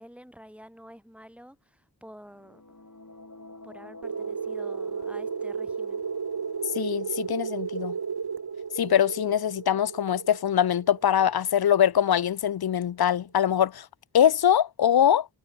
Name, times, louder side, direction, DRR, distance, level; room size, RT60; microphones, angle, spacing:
voice 1, 0.0-2.6 3.6-6.0, equal, 5° right, 5.4 m, -49 dB
sound 1, 2.3-10.9, left 2 dB, 45° left, 6.1 m, -48 dB
sound 2, 4.0-12.4, right 6 dB, 65° right, 0.9 m, -34 dB
voice 2, 6.8-7.9 8.8-13.8 14.1-15.3, left 9 dB, 65° left, 0.5 m, -23 dB
wide cardioid pair, 50°, 42 cm